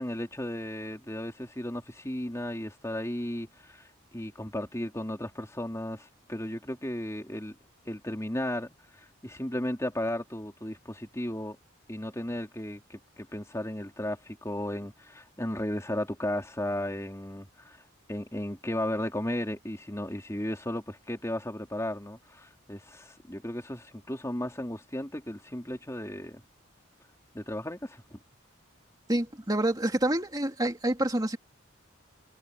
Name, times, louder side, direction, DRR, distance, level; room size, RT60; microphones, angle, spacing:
voice 1, 0.0-3.9 4.1-7.5 7.9-11.6 11.9-17.8 18.1-26.4 27.3-28.2, left 1 dB, 15° left, 3.4 m, -35 dB
voice 2, 29.1-31.4, right 1 dB, 20° right, 2.9 m, -27 dB
head